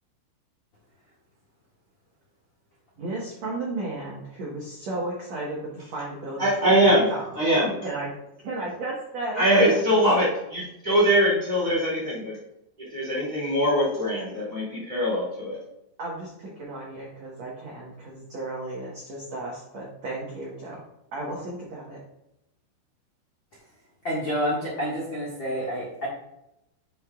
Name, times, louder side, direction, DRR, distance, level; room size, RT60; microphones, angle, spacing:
voice 1, 3.0-7.3 7.8-8.1 8.4-10.0 16.0-20.8 21.1-22.0, right 2 dB, 90° right, -5 dB, 1.5 m, -34 dB
voice 2, 6.4-7.1 7.3-7.8 9.3-12.4 12.9-15.6, equal, 20° right, -7 dB, 1.2 m, -22 dB
voice 3, 24.0-26.1, equal, 60° left, -7 dB, 1.2 m, -28 dB
9.7 x 5.3 x 2.4 m, 0.85 s
omnidirectional pair, 5.3 m